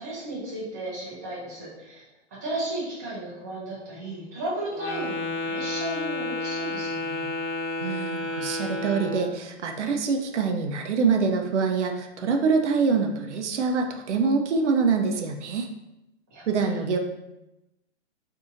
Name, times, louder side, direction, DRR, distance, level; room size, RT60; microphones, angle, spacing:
voice 1, 0.0-2.0 2.4-7.3 16.3-16.8, right 1 dB, 15° right, -8 dB, 0.5 m, -34 dB
Wind instrument woodwind instrument, 4.7-9.3, left 2 dB, 70° left, 1.0 m, -31 dB
voice 2, 7.8-15.7 16.5-17.0, right 5 dB, 80° right, 4 dB, 0.6 m, -25 dB
2.7 x 2.5 x 3.8 m, 0.93 s
hypercardioid pair, 175°, 35 cm